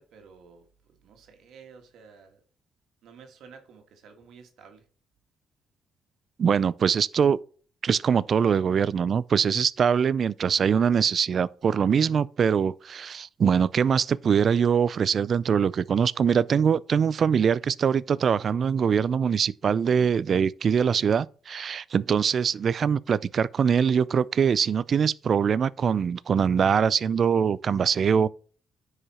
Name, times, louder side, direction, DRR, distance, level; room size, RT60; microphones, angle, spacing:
voice 1, 0.0-2.4 3.0-4.8, right 5 dB, 75° right, 1.6 m, -51 dB
voice 2, 6.4-7.4 7.8-28.3, right 7 dB, 50° right, 0.4 m, -23 dB
10.0 x 4.9 x 4.3 m
cardioid pair, 90°, 0 cm